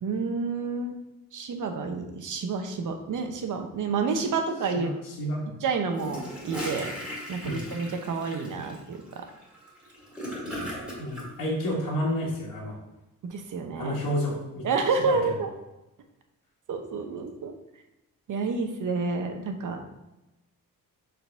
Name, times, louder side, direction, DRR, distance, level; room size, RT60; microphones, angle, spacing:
voice 1, 0.0-1.0 1.3-4.9 5.6-6.9 7.3-9.2 13.2-14.0 14.6-15.5 16.7-17.5 18.3-19.8, right 4 dB, 60° right, 5 dB, 0.9 m, -29 dB
voice 2, 4.7-5.5 7.4-7.7 11.0-12.7 13.8-14.7 15.0-15.1, equal, 75° left, -9 dB, 2.0 m, -30 dB
Gurgling / Toilet flush, 5.9-11.3, equal, 5° right, 2.1 m, -37 dB
6.9 x 3.9 x 4.5 m, 0.97 s
wide cardioid pair, 155°, 35 cm